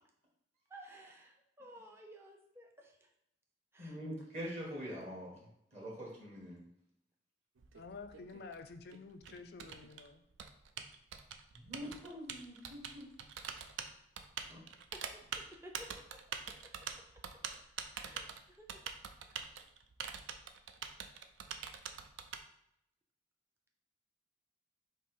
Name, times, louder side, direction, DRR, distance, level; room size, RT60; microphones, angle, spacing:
voice 1, 0.7-3.1 3.7-4.0 14.9-15.9 17.9-18.8 19.2-19.5, right 1 dB, 15° right, 0.5 m, -55 dB
voice 2, 3.8-6.6 11.5-13.1 13.4-13.5 14.5-14.6, equal, 35° right, 1.4 m, -45 dB
Typing, 7.6-22.4, right 7 dB, 80° right, 0.4 m, -45 dB
voice 3, 7.7-10.2, left 4 dB, 55° left, 0.4 m, -50 dB
5.8 x 2.0 x 4.4 m
head